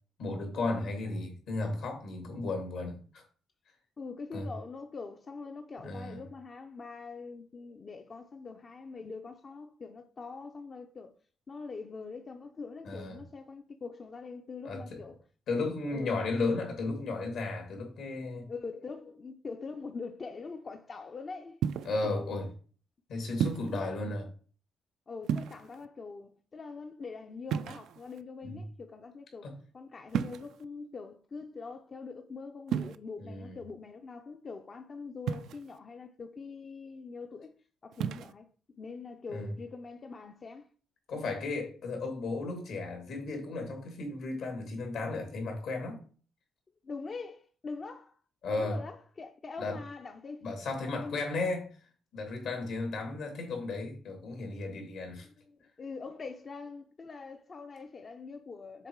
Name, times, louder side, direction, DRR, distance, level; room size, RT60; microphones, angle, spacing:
voice 1, 0.2-3.2 4.3-4.5 5.8-6.2 12.8-13.2 14.6-15.0 15.5-18.5 21.8-22.5 23.1-24.2 28.4-28.6 29.4-29.5 33.2-33.6 39.3-39.5 41.1-46.0 48.4-48.8 49.6-49.8 50.4-51.8 52.1-55.3, left 3 dB, 80° left, 2.5 m, -34 dB
voice 2, 4.0-11.1 11.5-15.2 15.5-16.2 18.0-21.6 22.0-22.4 23.7-23.9 25.1-29.5 29.7-37.5 37.8-38.5 38.8-40.7 46.8-48.2 48.6-50.5 50.9-51.2 55.2-58.9, left 4 dB, 40° left, 0.5 m, -43 dB
sound 1, 21.6-22.0 23.4-23.8 25.2-25.9 27.5-28.2 30.1-30.6 32.7-33.0 35.3-35.8 37.9-38.3, right 8 dB, 75° right, 0.3 m, -33 dB
6.8 x 3.7 x 4.6 m
cardioid pair, 90°, 0 cm